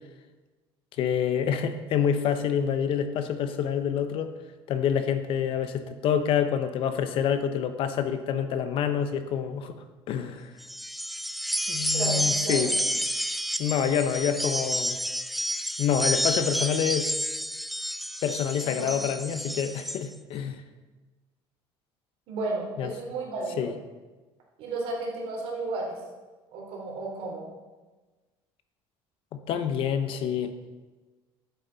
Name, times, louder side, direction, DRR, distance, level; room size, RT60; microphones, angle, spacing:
voice 1, 1.0-4.3 4.7-9.8 10.1-10.5 11.7-12.7 13.6-15.0 15.8-17.1 18.2-20.6 22.8-22.9 23.6-23.7 29.3-30.5, left 8 dB, 60° left, 9 dB, 0.8 m, -27 dB
sound 1, 10.6-20.0, equal, ahead, 0.3 m, -30 dB
voice 2, 11.9-12.8 18.6-18.9 22.3-23.7 24.6-26.0 26.5-27.5, right 3 dB, 65° right, -2 dB, 3.3 m, -33 dB
11.0 x 8.2 x 4.0 m, 1.3 s
cardioid pair, 135°, 10 cm